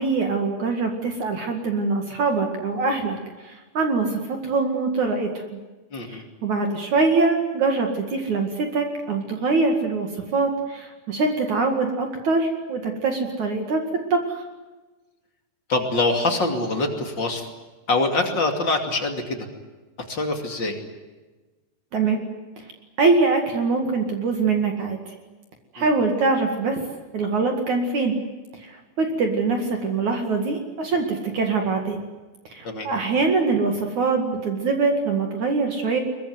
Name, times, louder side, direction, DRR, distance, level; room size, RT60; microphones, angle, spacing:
voice 1, 0.0-3.2 3.4-5.6 6.1-13.8 14.1-14.2 21.9-22.2 23.0-25.0 25.7-26.8 27.1-28.1 29.0-32.0 32.5-36.0, right 4 dB, 50° right, 4 dB, 2.9 m, -23 dB
voice 2, 5.9-6.2 15.7-17.5 17.9-19.5 20.1-20.8 25.8-25.9 32.6-32.9, left 2 dB, 30° left, 4 dB, 2.5 m, -24 dB
22.5 x 22.0 x 9.6 m, 1.2 s
omnidirectional pair, 5.3 m